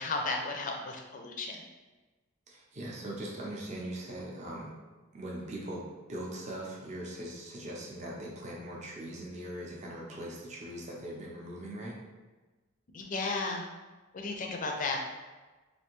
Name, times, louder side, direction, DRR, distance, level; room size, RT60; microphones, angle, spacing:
voice 1, 0.0-1.6 12.9-13.6 14.1-15.0, left 3 dB, 40° left, 2 dB, 0.4 m, -34 dB
voice 2, 2.5-4.7 5.1-5.8 6.1-11.9, right 1 dB, 35° right, -3 dB, 0.5 m, -40 dB
3.3 x 2.6 x 3.0 m, 1.2 s
head